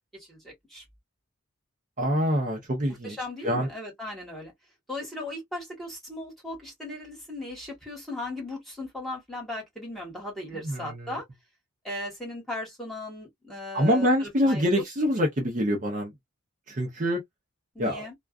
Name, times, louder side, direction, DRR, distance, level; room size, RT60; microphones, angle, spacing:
voice 1, 0.2-0.8 3.0-4.5 4.9-11.2 11.8-14.6 17.7-18.1, left 2 dB, ahead, 1.3 m, -37 dB
voice 2, 2.0-3.7 10.5-11.2 13.7-16.1 16.7-17.2 17.8-18.1, equal, 35° right, 0.7 m, -26 dB
2.3 x 2.3 x 2.4 m
head